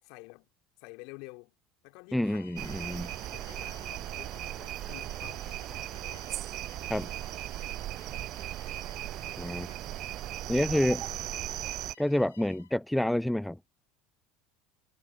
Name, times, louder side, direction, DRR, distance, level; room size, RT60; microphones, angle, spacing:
voice 1, 0.0-0.5 0.8-1.5 1.8-2.5 3.3-6.3 10.4-11.7, left 31 dB, 55° left, 3.4 m, -50 dB
voice 2, 2.1-3.1 6.9-7.1 9.4-9.7 10.5-11.0 12.0-13.6, left 1 dB, 5° left, 0.4 m, -28 dB
Bowed string instrument, 2.2-12.8, left 8 dB, 75° left, 3.0 m, -57 dB
sound 1, 2.6-11.9, right 14 dB, 45° right, 0.5 m, -37 dB
figure-of-eight pair, 70°, 0 cm